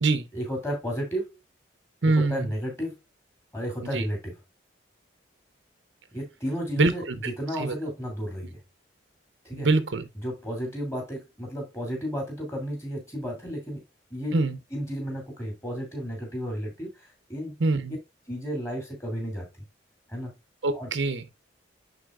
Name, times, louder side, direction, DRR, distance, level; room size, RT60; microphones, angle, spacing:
voice 1, 0.3-1.3 2.0-2.9 3.5-4.4 6.1-8.6 9.4-9.7 10.2-13.8 14.1-14.4 14.7-16.9 17.3-17.5 18.3-19.5 20.1-20.3 20.7-20.9, equal, 15° left, 2.8 m, -32 dB
voice 2, 2.0-2.5 3.9-4.0 6.8-7.3 7.6-7.7 9.5-10.1 14.3-14.6 17.6-18.0 20.6-21.3, right 3 dB, 75° right, 0.8 m, -24 dB
10.0 x 4.1 x 2.4 m
head